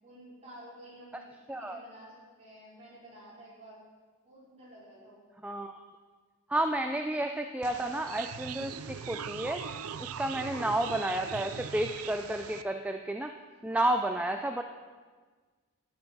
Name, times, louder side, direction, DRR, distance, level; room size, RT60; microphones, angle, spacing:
voice 1, 0.0-3.8 4.2-5.3 13.6-14.0, right 1 dB, 30° right, -8 dB, 4.8 m, -52 dB
voice 2, 5.4-5.8 6.5-9.6 10.0-13.3 13.6-14.6, right 1 dB, 5° right, 5 dB, 0.3 m, -31 dB
sound 1, 7.6-12.6, right 7 dB, 80° right, 0.5 m, -40 dB
13.0 x 9.8 x 5.5 m, 1.5 s
head